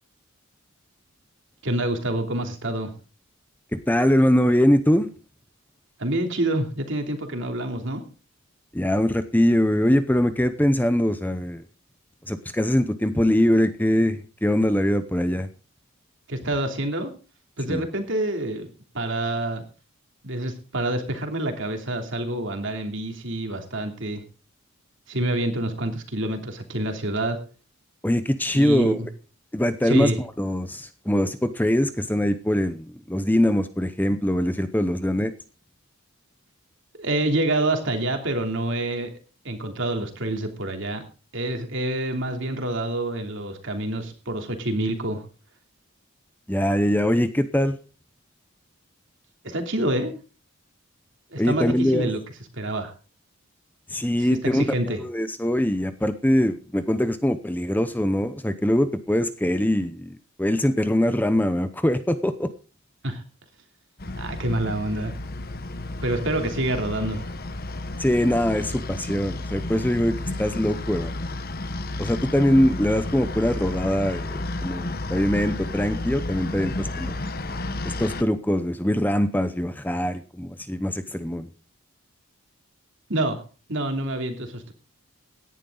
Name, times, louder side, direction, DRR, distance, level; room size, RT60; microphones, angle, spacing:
voice 1, 1.6-2.9 6.0-8.0 16.3-17.1 17.6-18.7 18.9-19.6 20.2-24.2 25.1-27.4 28.5-29.1 29.8-30.2 36.9-39.1 39.4-41.0 41.3-45.2 49.4-50.1 51.3-52.2 52.6-52.9 54.5-55.0 63.0-63.2 64.2-65.1 66.0-67.3 83.1-83.4 83.7-84.7, right 1 dB, 55° right, 5 dB, 3.0 m, -27 dB
voice 2, 3.7-5.1 8.7-11.6 12.2-15.5 17.7-17.8 28.0-29.0 29.5-35.3 46.5-47.8 51.4-52.1 53.9-62.5 68.0-71.2 72.0-77.2 77.8-81.5, left 1 dB, 10° left, 11 dB, 0.7 m, -22 dB
sound 1, 64.0-78.2, left 2 dB, 45° left, 1.2 m, -32 dB
17.0 x 11.0 x 3.9 m, 0.35 s
head